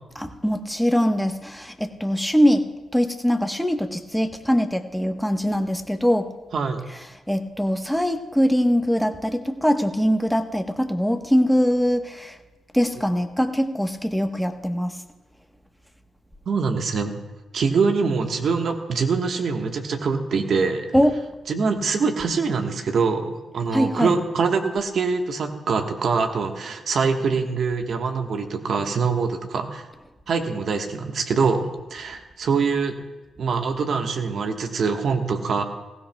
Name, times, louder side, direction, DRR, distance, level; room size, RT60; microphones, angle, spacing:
voice 1, 0.1-6.3 6.9-7.0 7.3-12.4 12.7-15.0 20.9-21.1 23.7-24.2, equal, ahead, 5 dB, 1.1 m, -22 dB
voice 2, 16.5-17.1 17.5-20.9 21.5-29.8 30.3-32.9 33.4-35.6, right 5 dB, 65° right, 4 dB, 1.3 m, -24 dB
20.0 x 16.0 x 2.3 m, 1.1 s
hypercardioid pair, 45°, 0 cm